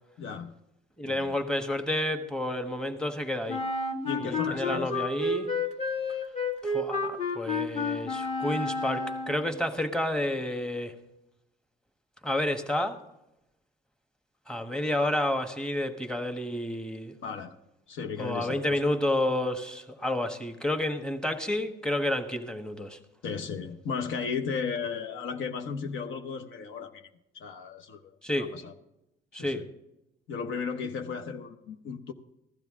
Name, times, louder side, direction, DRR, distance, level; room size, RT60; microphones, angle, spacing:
voice 1, 0.2-0.5 1.0-1.3 4.0-5.1 17.2-17.6 17.9-18.8 23.2-27.1 27.3-28.7 29.3-29.7 30.3-32.1, left 5 dB, 80° left, 6 dB, 1.0 m, -35 dB
voice 2, 1.0-3.6 4.2-5.5 6.6-10.9 12.2-13.0 14.5-17.1 18.2-23.0 28.2-28.5 29.3-29.6, left 1 dB, 5° left, 6 dB, 1.3 m, -30 dB
Wind instrument woodwind instrument, 3.5-9.5, left 3 dB, 35° left, 1.8 m, -30 dB
15.5 x 12.0 x 3.7 m, 0.91 s
cardioid pair, 90°, 20 cm